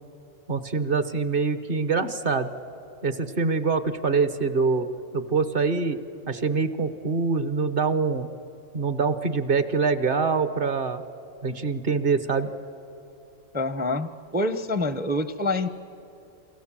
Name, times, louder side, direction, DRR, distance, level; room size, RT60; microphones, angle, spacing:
voice 1, 0.5-2.5 3.0-4.9 5.1-6.0 6.3-8.3 8.7-11.0 11.4-12.5, right 4 dB, 45° right, 11 dB, 1.1 m, -24 dB
voice 2, 13.5-15.7, left 2 dB, 10° right, 11 dB, 0.4 m, -26 dB
29.0 x 23.5 x 7.5 m, 2.9 s
omnidirectional pair, 1.4 m